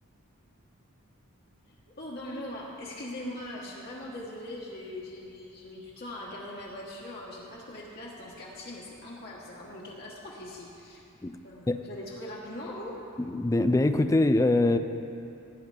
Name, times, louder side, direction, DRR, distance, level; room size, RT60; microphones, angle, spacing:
voice 1, 1.7-11.0 11.4-13.0, left 1 dB, 45° left, -5 dB, 1.3 m, -41 dB
voice 2, 13.2-14.8, left 2 dB, 15° left, 9 dB, 0.3 m, -23 dB
16.5 x 9.5 x 3.4 m, 2.7 s
head